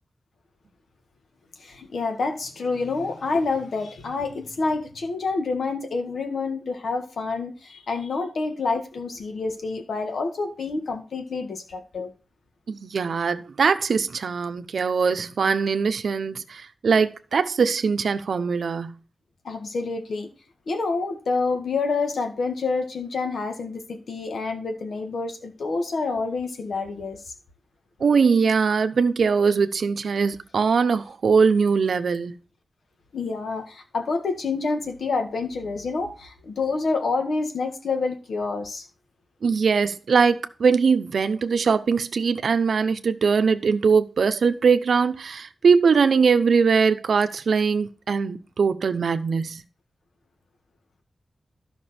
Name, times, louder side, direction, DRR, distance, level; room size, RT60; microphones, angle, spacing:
voice 1, 1.6-12.1 19.4-20.3 20.7-27.3 33.1-38.9, left 4 dB, 70° left, 1.7 m, -28 dB
voice 2, 12.7-19.0 28.0-32.4 39.4-49.6, right 5 dB, 65° right, 0.7 m, -21 dB
12.0 x 5.9 x 4.3 m
wide cardioid pair, 170°, 0 cm